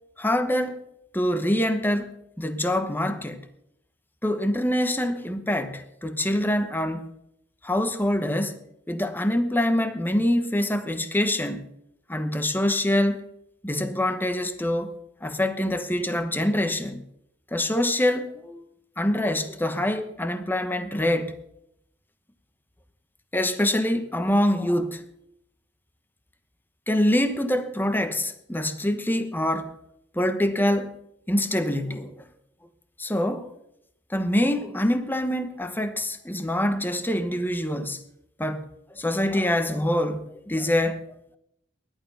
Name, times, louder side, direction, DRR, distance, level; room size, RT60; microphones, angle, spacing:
voice 1, 0.2-0.8 1.1-3.4 4.2-7.1 7.6-11.7 12.1-13.3 13.6-17.0 17.5-18.6 19.0-21.3 23.3-25.0 26.9-29.8 30.1-31.0 31.3-32.3 33.0-33.5 34.1-38.0 38.4-38.7 38.9-41.1, left 1 dB, 10° left, 1.0 m, -25 dB
16.5 x 11.5 x 5.6 m
head